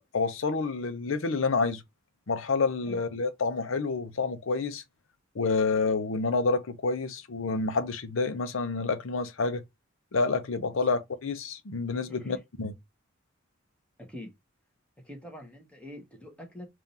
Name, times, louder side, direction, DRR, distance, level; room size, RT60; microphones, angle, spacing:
voice 1, 0.0-1.8 2.3-4.8 5.3-9.6 10.1-12.7, left 4 dB, 85° left, 0.7 m, -28 dB
voice 2, 12.1-12.4 14.0-14.3 15.0-16.7, left 1 dB, 5° left, 1.1 m, -44 dB
3.7 x 2.6 x 4.1 m
head